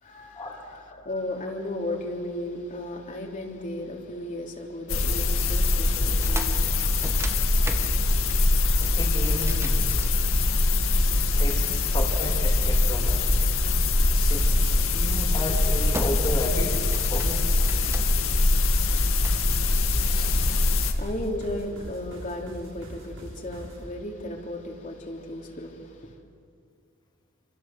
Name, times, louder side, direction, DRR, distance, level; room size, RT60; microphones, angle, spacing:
voice 1, 0.0-8.1 20.2-26.2, left 1 dB, 40° left, 3.4 m, -35 dB
sound 1, 4.9-20.9, left 2 dB, 85° left, 2.2 m, -23 dB
sound 2, 6.1-10.8 11.5-12.8 14.6-14.8 15.3-15.6 15.9-16.5 16.8-18.4 18.9-19.5, right 1 dB, 15° right, 1.7 m, -38 dB
voice 2, 9.0-10.0 11.4-11.7 11.9-13.3 14.1-17.4 20.1-20.4, left 1 dB, 25° left, 3.2 m, -33 dB
sound 3, 12.6-23.8, right 1 dB, 70° right, 7.3 m, -43 dB
29.0 x 26.5 x 7.6 m
head